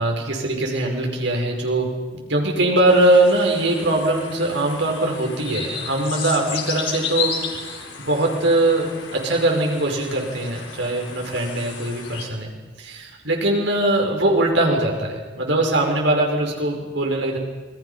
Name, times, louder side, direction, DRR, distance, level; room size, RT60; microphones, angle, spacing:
voice 1, 0.0-1.9 2.3-7.3 8.0-12.5 12.8-17.4, right 1 dB, 75° right, 1 dB, 5.5 m, -21 dB
sound 1, 2.9-12.3, left 6 dB, 85° left, 4.3 m, -33 dB
28.0 x 23.5 x 5.8 m, 1.3 s
head